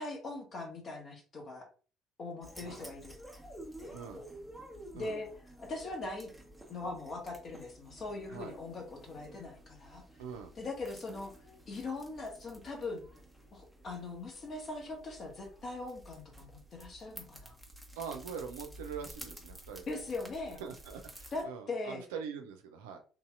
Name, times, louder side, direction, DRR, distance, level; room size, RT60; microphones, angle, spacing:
voice 1, 0.0-1.7 2.2-3.1 3.8-4.0 4.9-5.3 5.6-6.3 6.7-10.0 10.6-11.3 11.7-13.0 13.5-17.6 19.9-20.6 21.3-22.0, left 3 dB, 40° left, 1 dB, 1.4 m, -41 dB
sound 1, 2.4-21.4, right 1 dB, 5° right, 1.1 m, -52 dB
voice 2, 3.9-4.2 4.9-5.2 8.3-8.5 10.2-10.5 18.0-20.1 20.6-23.0, right 6 dB, 75° right, 5 dB, 0.5 m, -43 dB
3.7 x 2.7 x 2.4 m, 0.37 s
figure-of-eight pair, 55°, 0 cm